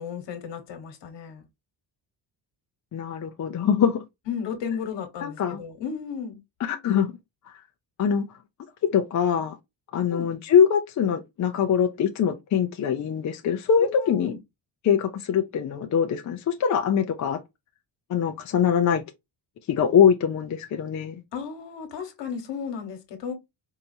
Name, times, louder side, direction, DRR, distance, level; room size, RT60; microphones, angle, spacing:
voice 1, 0.0-1.5 4.3-6.4 10.1-10.3 13.8-14.4 21.3-23.3, left 7 dB, 65° left, 1.4 m, -34 dB
voice 2, 2.9-4.0 5.2-5.6 6.6-7.1 7.5-7.6 8.0-8.3 8.8-9.6 9.9-14.3 14.8-17.4 18.1-19.0 19.7-21.2, left 7 dB, 40° left, 0.5 m, -23 dB
4.7 x 2.7 x 2.7 m
cardioid pair, 145°, 45 cm